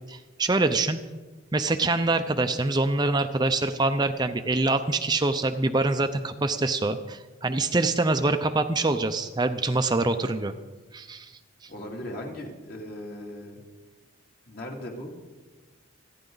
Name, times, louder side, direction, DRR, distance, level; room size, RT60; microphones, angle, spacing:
voice 1, 0.1-1.0 1.5-10.5 10.9-11.3 11.6-11.7, right 2 dB, 20° right, 7 dB, 0.6 m, -25 dB
voice 2, 11.7-13.6 14.5-15.1, left 1 dB, 50° left, 0 dB, 2.7 m, -38 dB
28.0 x 10.0 x 3.9 m, 1.3 s
head